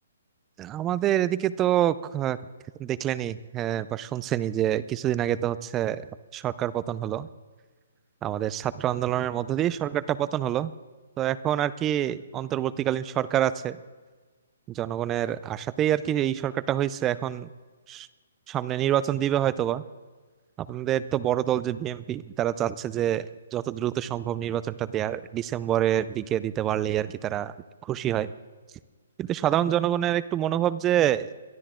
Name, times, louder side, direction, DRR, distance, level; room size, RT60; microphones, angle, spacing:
voice 1, 0.6-2.4 2.8-6.1 6.3-7.3 8.2-10.7 11.2-13.8 14.7-17.5 17.9-18.1 18.5-19.8 20.6-27.5 27.8-28.3 29.2-31.3, right 11 dB, 15° right, 17 dB, 0.4 m, -26 dB
22.5 x 13.0 x 3.7 m, 1.4 s
hypercardioid pair, 165°, 0 cm